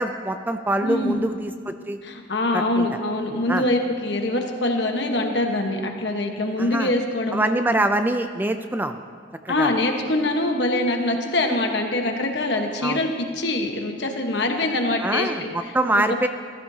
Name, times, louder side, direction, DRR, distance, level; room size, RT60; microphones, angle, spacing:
voice 1, 0.0-2.0 2.5-3.0 3.5-3.6 6.6-6.9 7.3-9.0 9.5-9.7 12.8-13.0 15.0-16.3, right 1 dB, 10° right, 8 dB, 0.3 m, -24 dB
voice 2, 0.8-1.2 2.0-7.5 9.5-15.3 15.6-15.7 16.1-16.3, left 2 dB, 65° left, 3 dB, 1.3 m, -24 dB
14.5 x 14.0 x 2.8 m, 2.2 s
head